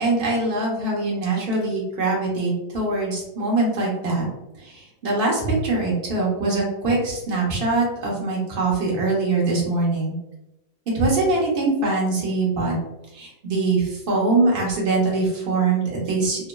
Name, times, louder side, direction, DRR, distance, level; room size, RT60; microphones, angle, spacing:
voice 1, 0.0-4.2 4.6-10.1 10.9-12.8 13.1-16.5, right 3 dB, 55° right, -4 dB, 0.6 m, -23 dB
3.4 x 2.0 x 2.2 m, 0.94 s
omnidirectional pair, 2.2 m